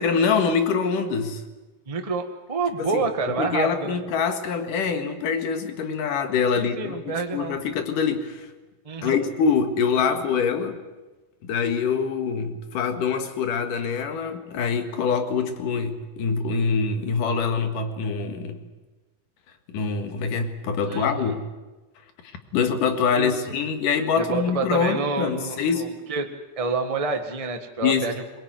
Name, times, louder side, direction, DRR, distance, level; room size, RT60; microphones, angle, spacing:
voice 1, 0.0-1.4 2.8-3.0 3.4-8.5 9.0-10.8 11.4-18.6 19.7-21.5 22.5-25.9 27.8-28.1, left 6 dB, 70° left, 7 dB, 3.2 m, -24 dB
voice 2, 1.9-4.0 6.5-7.6 8.8-9.2 20.8-21.3 23.1-23.4 24.2-26.3 26.6-28.1, right 4 dB, 45° right, 5 dB, 0.4 m, -28 dB
22.5 x 20.5 x 9.3 m, 1.2 s
omnidirectional pair, 4.0 m